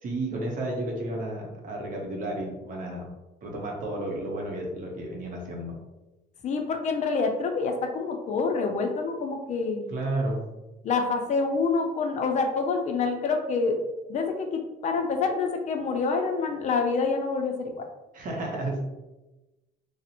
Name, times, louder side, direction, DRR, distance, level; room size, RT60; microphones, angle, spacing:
voice 1, 0.0-3.1 3.4-5.7 9.9-10.4 18.1-18.8, right 1 dB, 50° right, -1 dB, 0.7 m, -32 dB
voice 2, 6.4-9.9 10.8-13.8 14.1-17.9, left 4 dB, 45° left, 4 dB, 0.4 m, -27 dB
2.5 x 2.0 x 2.7 m, 1.1 s
cardioid pair, 110°, 17 cm